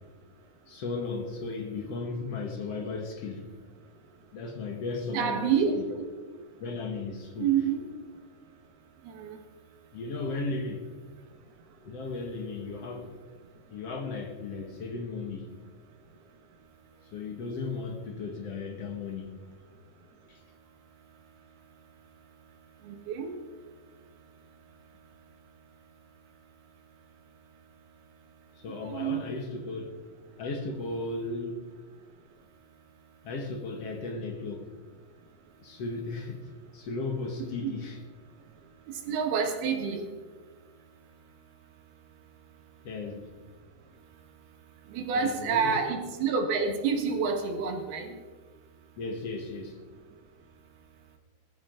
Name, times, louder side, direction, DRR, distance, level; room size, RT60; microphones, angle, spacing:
voice 1, 0.7-3.5 4.3-5.8 6.6-7.6 9.9-10.9 11.8-13.2 13.7-15.5 16.9-19.3 20.3-20.4 28.6-29.9 30.4-31.7 33.2-34.7 35.6-38.0 42.8-43.3 45.1-45.8 49.0-49.8, left 3 dB, 55° left, 1.9 m, -35 dB
voice 2, 5.1-6.0 7.4-7.8 9.1-9.4 22.8-23.4 28.8-29.2 37.6-37.7 39.1-40.0 44.9-48.2, right 6 dB, 85° right, 3.7 m, -28 dB
20.0 x 13.5 x 3.8 m
omnidirectional pair, 4.3 m